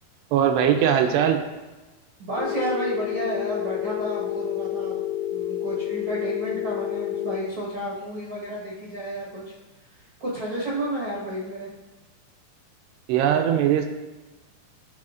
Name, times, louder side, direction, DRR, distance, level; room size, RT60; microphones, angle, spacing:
voice 1, 0.3-1.4 13.1-13.9, right 9 dB, 85° right, 5 dB, 2.7 m, -20 dB
voice 2, 2.2-5.0 5.3-9.5 10.2-11.7, right 1 dB, 65° right, -8 dB, 1.4 m, -31 dB
Telephone, 2.4-7.4, left 11 dB, 85° left, 2.6 m, -29 dB
12.0 x 4.3 x 2.5 m, 1.1 s
omnidirectional pair, 4.8 m